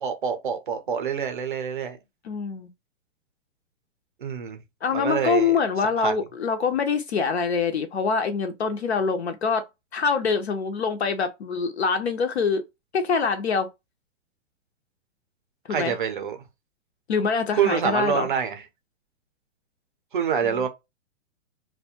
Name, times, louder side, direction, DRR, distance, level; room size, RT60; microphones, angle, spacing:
voice 1, 0.0-2.0 4.2-4.6 4.9-5.5 6.0-6.2 15.7-16.4 17.6-18.6 20.1-20.7, right 7 dB, 40° right, 0.5 m, -26 dB
voice 2, 2.2-2.7 4.8-9.6 9.9-12.6 12.9-13.7 15.7-15.9 17.1-18.3 20.4-20.6, left 5 dB, 55° left, 0.5 m, -25 dB
2.5 x 2.1 x 2.7 m
hypercardioid pair, 175°, 40 cm